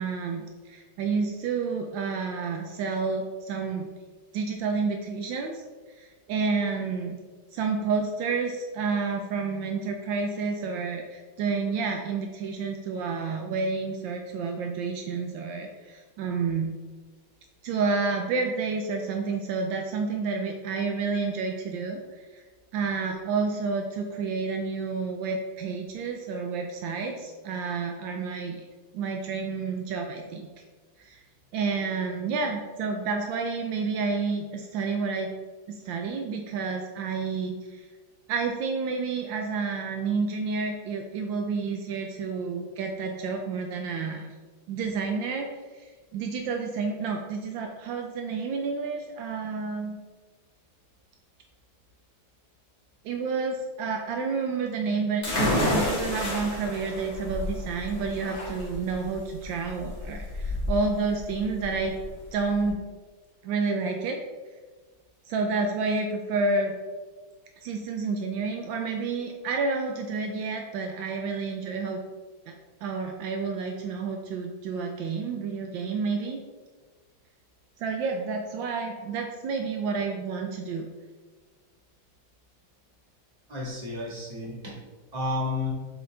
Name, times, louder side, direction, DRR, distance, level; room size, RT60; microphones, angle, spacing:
voice 1, 0.0-3.9 4.3-5.6 6.0-7.2 7.5-16.8 17.6-22.4 22.7-28.7 28.9-30.5 31.0-31.2 31.5-35.3 35.7-37.9 38.3-44.3 44.7-45.5 45.7-50.0 53.0-61.9 62.3-62.8 63.4-64.2 65.3-66.8 67.6-72.0 72.5-72.6 72.8-76.4 77.8-80.9, right 4 dB, 75° right, 3 dB, 1.3 m, -30 dB
sound 1, 55.2-62.7, left 1 dB, 35° left, 1.9 m, -30 dB
voice 2, 83.5-84.8 85.1-85.7, left 2 dB, 20° right, -5 dB, 1.6 m, -31 dB
7.7 x 3.9 x 3.3 m, 1.4 s
omnidirectional pair, 2.1 m